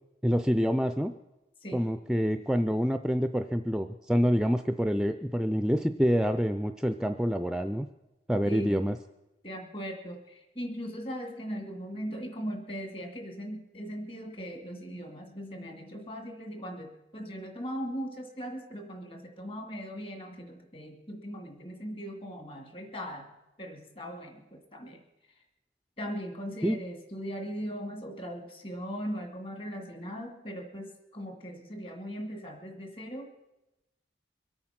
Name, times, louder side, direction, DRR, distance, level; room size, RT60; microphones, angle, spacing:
voice 1, 0.2-1.1 1.7-7.9 8.3-8.9 26.6-26.8, equal, 5° right, 8 dB, 0.4 m, -27 dB
voice 2, 8.5-8.8 9.4-23.3 23.6-25.0 25.4-25.5 26.0-33.3, equal, 30° left, 4 dB, 2.2 m, -39 dB
23.5 x 8.7 x 5.9 m, 0.98 s
head